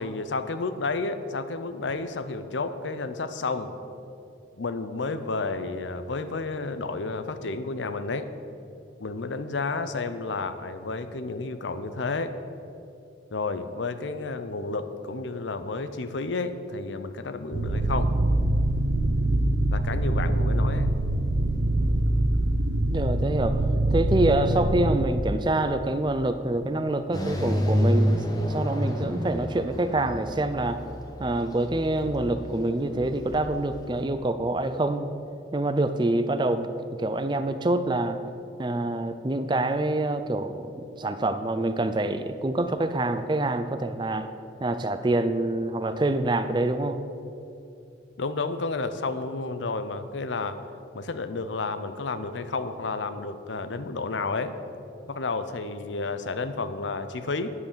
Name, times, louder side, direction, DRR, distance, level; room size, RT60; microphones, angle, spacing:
voice 1, 0.0-3.8 4.6-8.3 9.0-12.3 13.3-18.1 19.7-20.9 48.2-50.6 50.9-54.6 55.1-57.5, left 3 dB, 80° left, 10 dB, 0.7 m, -31 dB
sound 1, 17.5-25.1, right 1 dB, 90° right, 0.8 m, -24 dB
voice 2, 22.9-23.5 23.9-28.2 28.5-30.8 31.2-35.1 35.5-36.7 37.0-38.2 38.6-44.3 44.6-47.0, right 2 dB, 25° right, 10 dB, 0.4 m, -26 dB
sound 2, 27.1-34.0, equal, 20° left, 1.1 m, -29 dB
9.8 x 8.1 x 6.8 m, 2.7 s
head